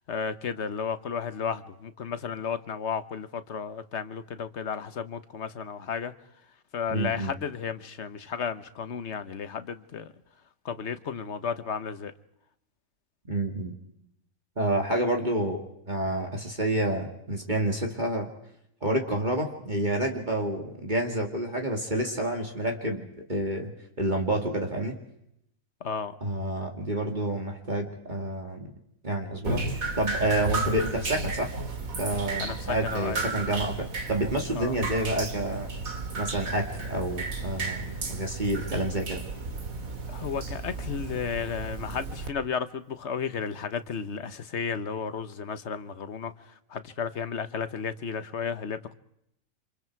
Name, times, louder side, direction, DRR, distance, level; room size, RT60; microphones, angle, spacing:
voice 1, 0.1-6.1 6.7-10.1 10.6-12.1 25.8-26.1 32.4-33.2 34.6-34.7 40.1-46.3 46.7-48.9, left 6 dB, 55° left, 12 dB, 1.3 m, -33 dB
voice 2, 6.9-7.3 13.3-13.7 14.6-18.3 18.8-23.7 24.0-25.0 26.2-28.7 29.0-31.5 32.0-35.7 36.1-39.2, right 1 dB, 35° right, 2 dB, 2.3 m, -29 dB
Drip, 29.4-42.3, right 3 dB, 85° right, 2.6 m, -33 dB
29.0 x 26.5 x 4.7 m, 0.78 s
omnidirectional pair, 1.4 m